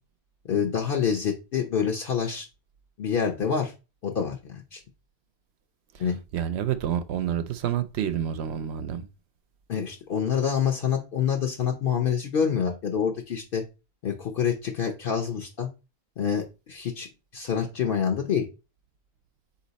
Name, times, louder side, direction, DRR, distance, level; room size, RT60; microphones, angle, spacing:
voice 1, 0.5-2.5 3.0-3.7 4.0-4.8 6.0-6.2 9.7-13.6 14.0-15.7 16.2-17.1 17.3-18.5, left 7 dB, 60° left, 0.8 m, -27 dB
voice 2, 5.9-9.1, right 9 dB, 80° right, 0.8 m, -29 dB
4.2 x 2.8 x 3.9 m
omnidirectional pair, 1.1 m